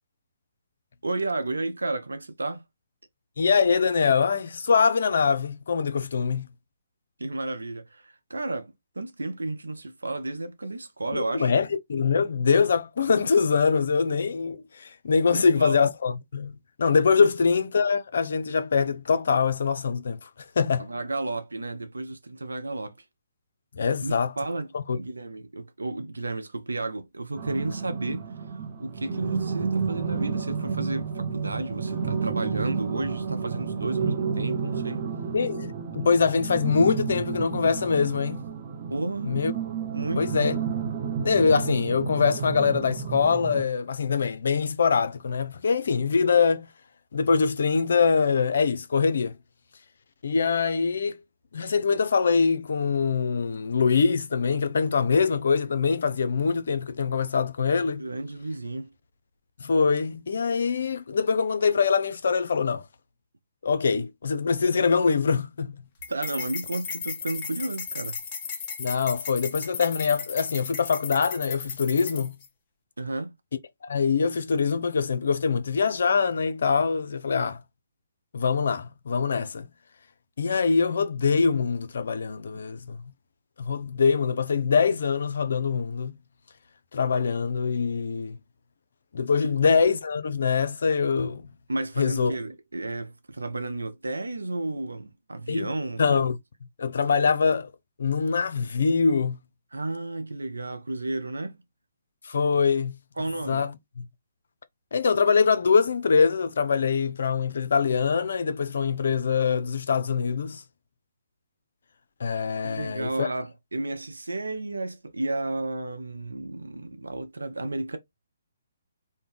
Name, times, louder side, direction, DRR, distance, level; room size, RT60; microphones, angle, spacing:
voice 1, 1.0-2.7 7.2-11.5 15.3-15.8 17.2-17.3 20.8-22.9 24.0-35.1 38.9-39.5 39.9-40.4 58.0-58.9 66.1-68.2 73.0-73.3 82.5-82.6 89.4-89.5 91.7-96.0 99.7-101.6 103.2-103.7 112.6-118.0, right 2 dB, 85° right, 0.5 m, -32 dB
voice 2, 3.4-6.5 11.1-20.3 20.6-20.9 23.7-24.3 24.7-25.0 35.3-38.4 39.2-39.5 40.2-40.6 41.2-46.7 47.1-49.3 50.2-51.2 51.5-58.1 59.6-62.8 63.6-65.8 68.8-72.3 73.8-77.6 78.3-79.7 80.4-83.0 83.7-86.2 86.9-88.4 89.1-91.5 92.0-92.3 95.5-95.7 96.0-96.4 96.8-97.7 98.0-99.4 102.2-103.0 103.5-103.7 104.9-110.6 112.2-113.3, left 5 dB, 65° left, 0.5 m, -23 dB
sound 1, 27.4-43.6, right 6 dB, 40° right, 0.6 m, -31 dB
sound 2, 66.0-72.5, left 6 dB, 30° left, 0.8 m, -35 dB
2.6 x 2.1 x 3.3 m
figure-of-eight pair, 140°, 0 cm